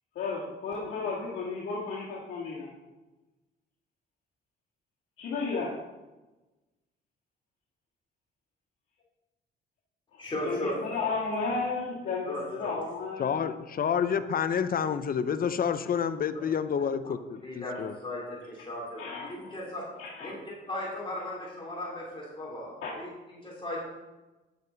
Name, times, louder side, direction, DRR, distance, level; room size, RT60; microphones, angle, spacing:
voice 1, 0.2-2.7 5.2-5.8 10.1-13.4 19.0-19.5 20.0-20.3 22.8-22.9, left 4 dB, 70° left, -7 dB, 2.0 m, -33 dB
voice 2, 10.2-11.1 12.2-12.7 17.4-19.8 20.2-20.3 20.7-23.8, left 1 dB, 25° left, -5 dB, 3.3 m, -37 dB
voice 3, 13.2-17.9, left 7 dB, 45° left, 11 dB, 0.6 m, -29 dB
9.5 x 8.1 x 4.0 m, 1.1 s
cardioid pair, 90°, 20 cm